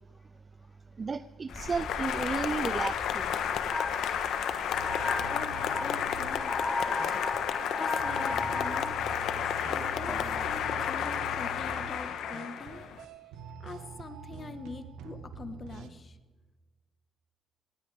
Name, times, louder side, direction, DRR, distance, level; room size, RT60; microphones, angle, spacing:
voice 1, 1.0-3.4, right 5 dB, 35° right, 14 dB, 0.5 m, -33 dB
Applause, 1.5-13.0, left 8 dB, 80° left, 1.3 m, -32 dB
sound 1, 1.5-10.4, left 2 dB, 20° left, 3.1 m, -37 dB
sound 2, 4.7-15.9, right 5 dB, 85° right, 1.4 m, -45 dB
voice 2, 5.3-7.4 7.8-9.0 9.7-12.8 13.6-16.2, left 4 dB, 35° left, 9 dB, 1.5 m, -44 dB
19.5 x 16.5 x 3.5 m, 1.3 s
cardioid pair, 90°, 0 cm